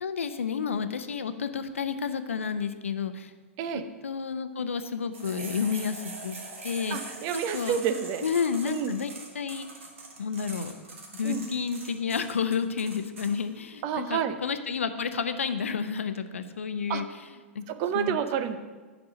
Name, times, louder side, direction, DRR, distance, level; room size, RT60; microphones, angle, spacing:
voice 1, 0.0-3.3 3.7-6.4 6.6-7.0 7.3-7.8 8.2-9.8 10.2-10.7 11.1-17.1 17.5-17.6 17.9-18.2, left 6 dB, 75° left, 10 dB, 0.6 m, -31 dB
sound 1, 5.1-13.3, right 3 dB, 70° right, 1.6 m, -42 dB
voice 2, 6.9-8.2 8.7-9.0 11.2-11.4 13.8-14.4 16.9-17.0 17.7-18.6, right 8 dB, 40° right, 10 dB, 0.6 m, -29 dB
7.0 x 5.4 x 6.2 m, 1.4 s
figure-of-eight pair, 105°, 7 cm